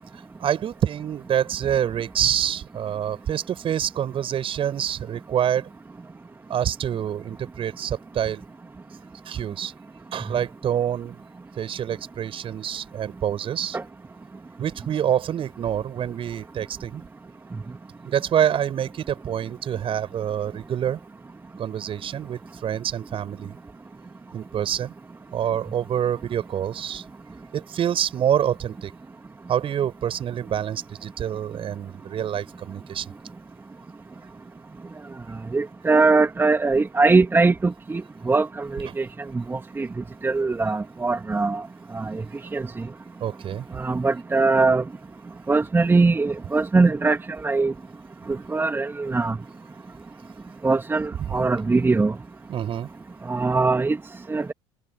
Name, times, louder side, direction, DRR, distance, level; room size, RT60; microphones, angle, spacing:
voice 1, 0.1-5.7 6.5-8.4 9.3-9.7 10.1-11.2 11.6-13.8 14.6-17.0 18.1-21.0 21.6-23.6 24.3-24.9 25.3-27.0 27.5-28.9 29.5-33.1 43.2-43.7 51.2-51.3 52.5-52.9, right 9 dB, 40° right, 7.1 m, -26 dB
voice 2, 35.5-39.1 39.3-39.9 40.2-41.6 41.9-42.1 42.5-42.6 43.8-44.8 45.5-47.2 47.4-47.7 48.5-49.4 50.6-52.1 53.3-54.0 54.3-54.5, right 3 dB, 15° right, 2.8 m, -21 dB
figure-of-eight pair, 70°, 15 cm